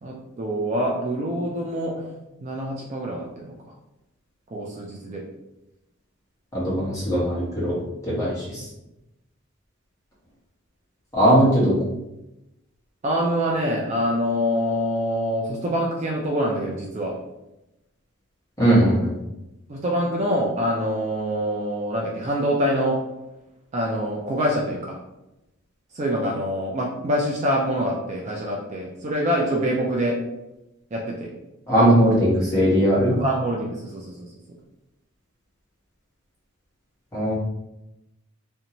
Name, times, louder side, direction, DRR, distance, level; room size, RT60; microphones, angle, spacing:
voice 1, 0.0-2.1 2.4-3.7 4.5-5.2 13.0-17.1 19.7-23.0 23.7-25.0 25.9-30.2 30.9-31.3 33.2-34.3, equal, 30° right, -1 dB, 0.3 m, -25 dB
voice 2, 6.5-8.6 11.1-11.8 18.6-19.1 31.7-33.2 37.1-37.3, equal, 15° left, -8 dB, 1.0 m, -19 dB
2.6 x 2.1 x 2.8 m, 0.92 s
head